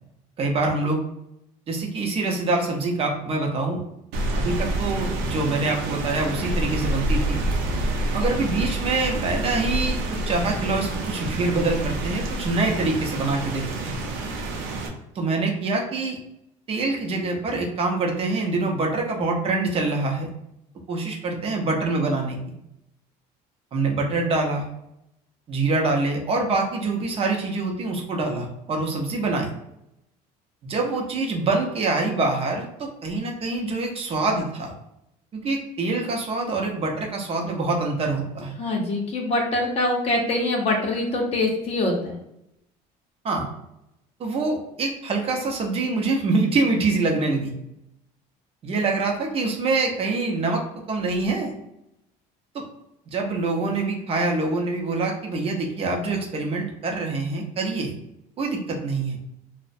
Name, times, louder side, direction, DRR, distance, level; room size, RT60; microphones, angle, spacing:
voice 1, 0.4-1.0 1.7-3.8 4.4-7.4 8.1-14.0 15.1-16.2 16.7-20.3 20.9-22.4 23.7-24.7 25.5-29.5 30.6-34.7 35.3-38.6 43.2-43.5 44.2-47.5 48.6-50.6 50.9-51.5 52.5-52.6 53.1-57.9 58.4-59.2, right 3 dB, 35° right, 1 dB, 0.6 m, -25 dB
Rain, 4.1-14.9, right 1 dB, 80° right, 0.5 m, -27 dB
voice 2, 38.6-42.2, left 2 dB, 40° left, 0 dB, 0.6 m, -24 dB
2.4 x 2.0 x 2.5 m, 0.82 s
cardioid pair, 125°, 17 cm